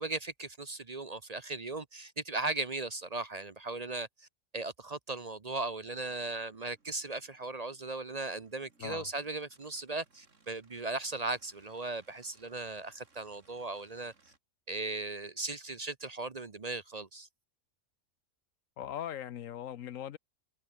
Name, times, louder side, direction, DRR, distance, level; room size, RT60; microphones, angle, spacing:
voice 1, 0.0-4.3 4.5-14.1 14.7-17.3, right 3 dB, 35° right, 0.9 m, -37 dB
sound 1, 6.0-14.4, right 4 dB, 65° right, 3.1 m, -67 dB
voice 2, 18.8-20.2, left 10 dB, 80° left, 1.2 m, -40 dB
omnidirectional pair, 1.4 m